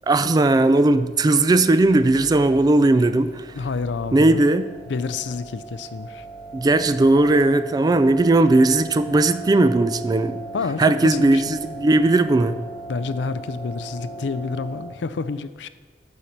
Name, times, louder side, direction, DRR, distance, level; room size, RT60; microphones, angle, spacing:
voice 1, 0.1-3.6 4.1-4.7 6.5-10.4 10.8-12.6, right 2 dB, 20° right, 13 dB, 0.3 m, -18 dB
sound 1, 1.6-14.9, right 2 dB, 85° right, 2.2 m, -38 dB
voice 2, 3.5-4.4 4.9-6.3 10.5-11.5 12.9-15.7, left 4 dB, 90° left, 13 dB, 0.4 m, -29 dB
7.0 x 5.9 x 6.5 m, 1.4 s
head